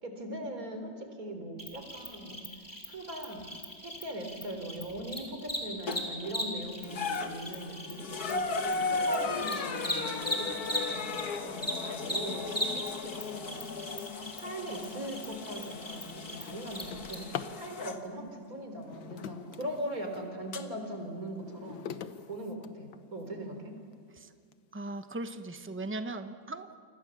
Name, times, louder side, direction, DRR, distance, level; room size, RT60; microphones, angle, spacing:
voice 1, 0.0-2.5 2.9-3.5 3.8-13.7 14.1-21.9 22.3-23.8, right 1 dB, 50° right, 5 dB, 4.2 m, -40 dB
Cricket, 1.6-11.2 11.5-17.1, left 1 dB, 10° left, 4.3 m, -38 dB
sound 1, 5.9-6.3 6.8-18.0 19.2-19.3 20.5-20.6, left 4 dB, 55° left, 1.8 m, -36 dB
Drawer open or close, 15.8-17.6 18.7-20.3 20.8-23.3 23.9-24.0 24.5-24.6 25.0-25.4, left 9 dB, 90° left, 1.8 m, -44 dB
voice 2, 24.7-26.7, right 2 dB, 10° right, 8 dB, 0.5 m, -38 dB
29.5 x 26.0 x 7.2 m, 2.1 s
omnidirectional pair, 2.0 m